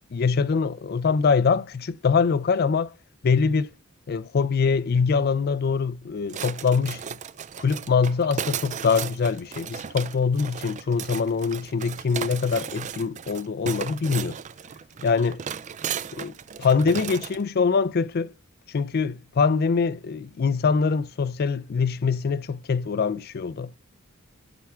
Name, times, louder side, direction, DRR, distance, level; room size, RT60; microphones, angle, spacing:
voice 1, 0.1-2.9 3.2-3.7 4.1-7.2 7.6-14.4 15.0-15.4 16.1-16.3 16.6-18.3 18.7-23.8, left 5 dB, 50° left, 0.4 m, -24 dB
sound 1, 6.3-17.4, right 8 dB, 35° right, 0.4 m, -35 dB
8.9 x 3.5 x 4.4 m
head